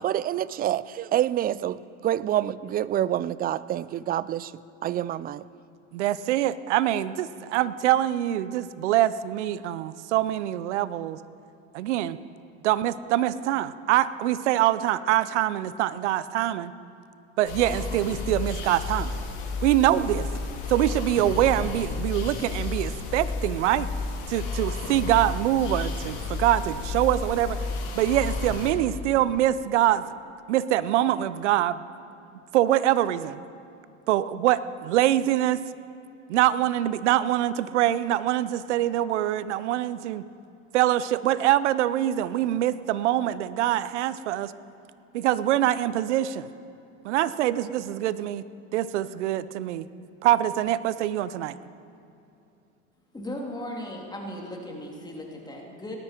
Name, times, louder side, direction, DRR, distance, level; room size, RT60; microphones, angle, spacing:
voice 1, 0.0-4.5 4.8-5.4, right 12 dB, 25° right, 19 dB, 0.4 m, -27 dB
voice 2, 5.9-11.2 11.7-12.2 12.6-16.7 17.4-19.2 19.6-20.3 20.7-23.9 24.3-27.6 27.9-30.0 30.5-31.8 32.5-33.4 34.1-35.6 36.3-40.2 40.7-44.5 45.1-46.5 47.0-48.4 48.7-49.9 50.2-51.6, right 13 dB, 85° right, 16 dB, 0.6 m, -24 dB
sound 1, 17.4-28.7, left 4 dB, 60° left, 2.7 m, -32 dB
voice 3, 53.1-56.0, left 1 dB, 10° left, -1 dB, 2.8 m, -37 dB
18.5 x 13.0 x 4.4 m, 2.7 s
hypercardioid pair, 85°, 34 cm